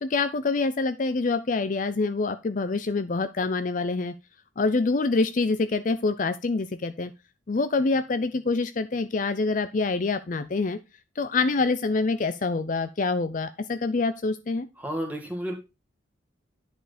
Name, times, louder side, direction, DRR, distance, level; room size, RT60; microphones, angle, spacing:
voice 1, 0.0-4.1 4.6-7.1 7.5-10.8 11.2-14.7, left 3 dB, 40° left, 11 dB, 0.5 m, -26 dB
voice 2, 14.8-15.5, equal, 10° right, 3 dB, 1.8 m, -31 dB
10.0 x 4.5 x 5.0 m, 0.27 s
head